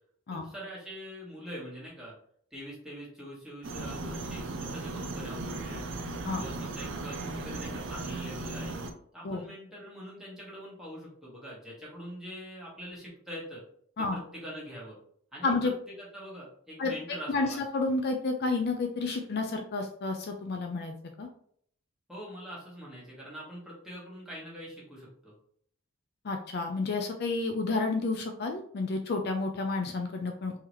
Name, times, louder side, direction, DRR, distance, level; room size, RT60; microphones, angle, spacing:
voice 1, 0.3-2.1 2.5-5.8 6.3-8.8 9.1-13.6 14.0-15.0 15.3-15.7 16.0-17.6 22.1-25.3, equal, 5° right, -6 dB, 1.4 m, -43 dB
sound 1, 3.6-8.9, right 2 dB, 60° right, 0.5 m, -37 dB
voice 2, 17.7-21.3 26.2-30.5, left 3 dB, 50° left, 4 dB, 0.4 m, -30 dB
3.7 x 2.8 x 3.0 m, 0.63 s
head